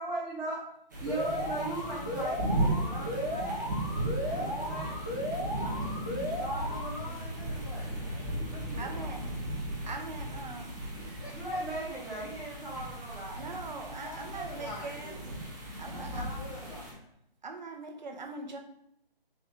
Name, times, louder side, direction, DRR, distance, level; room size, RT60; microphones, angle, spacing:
voice 1, 0.0-0.6 1.0-3.6 4.2-5.2 5.5-5.7 6.4-6.8 11.3-13.8 15.9-16.7, right 2 dB, 5° right, -12 dB, 1.0 m, -39 dB
sound 1, 0.9-16.9, right 1 dB, 20° right, 0.6 m, -36 dB
Alarm, 1.1-7.1, left 1 dB, 25° left, 0.5 m, -36 dB
voice 2, 6.5-9.3 10.9-11.6 13.5-15.4 15.8-17.1, left 1 dB, 40° left, -7 dB, 1.1 m, -47 dB
voice 3, 8.8-9.2 9.9-10.8 13.3-15.1 15.8-16.2 17.4-18.6, right 3 dB, 50° right, 3 dB, 0.8 m, -41 dB
4.2 x 3.1 x 3.7 m, 0.74 s
figure-of-eight pair, 155°, 30 cm